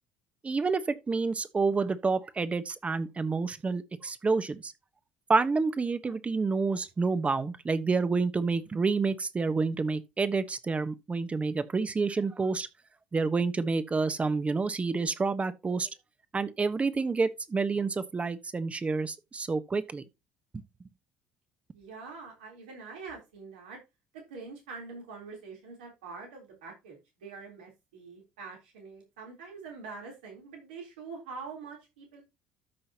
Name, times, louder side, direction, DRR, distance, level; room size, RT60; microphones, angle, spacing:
voice 1, 0.4-4.7 5.3-12.7 13.1-15.9 16.3-20.0, right 4 dB, 25° right, 1.1 m, -28 dB
voice 2, 21.7-23.8 24.1-32.2, right 4 dB, 80° right, 3.6 m, -45 dB
13.0 x 5.6 x 2.9 m
hypercardioid pair, 60°, 5 cm